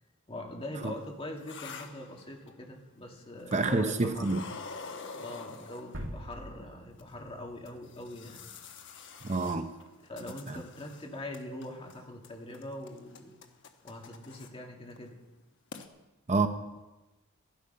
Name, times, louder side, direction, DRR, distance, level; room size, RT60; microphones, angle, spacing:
voice 1, 0.3-4.3 5.2-8.4 10.0-13.4 13.8-15.2, left 1 dB, 25° left, 1 dB, 2.2 m, -42 dB
sound 1, 0.8-2.7 3.4-3.9 4.2-6.3 7.0-7.1 7.6-11.1 11.3-12.0 12.2-14.5 14.9-15.1 15.4-15.5 15.7-15.9, left 4 dB, 60° left, 1.2 m, -47 dB
voice 2, 3.5-4.4 9.2-9.7 16.3-16.5, right 3 dB, 35° right, 8 dB, 0.7 m, -27 dB
sound 2, 5.9-8.8, equal, 75° right, 2.1 m, -44 dB
14.0 x 12.0 x 5.5 m, 1.1 s
head